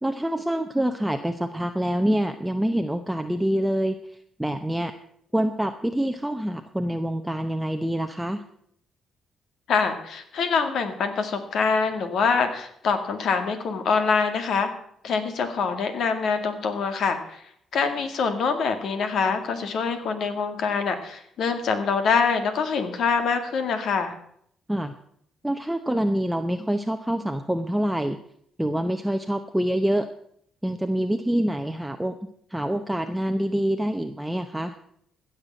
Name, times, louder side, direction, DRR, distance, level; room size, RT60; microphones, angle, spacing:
voice 1, 0.0-4.9 5.3-8.4 24.7-24.9 25.4-28.2 28.6-30.1 30.6-32.2 32.5-34.8, right 1 dB, 5° right, 6 dB, 0.8 m, -26 dB
voice 2, 9.7-14.7 15.0-17.4 17.7-24.1, left 5 dB, 70° left, 8 dB, 2.1 m, -25 dB
15.5 x 6.8 x 7.6 m, 0.69 s
cardioid pair, 90°, 0 cm